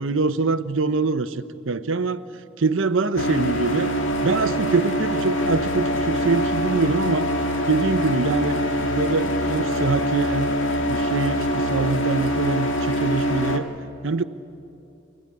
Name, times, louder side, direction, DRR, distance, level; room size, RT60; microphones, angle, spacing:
voice 1, 0.0-2.2 2.6-3.9 4.2-7.3 7.7-10.5 10.8-13.7 14.0-14.2, right 3 dB, 90° right, 11 dB, 0.8 m, -24 dB
sound 1, 3.2-13.6, equal, 85° left, 1.9 m, -24 dB
25.5 x 17.0 x 9.8 m, 2.8 s
head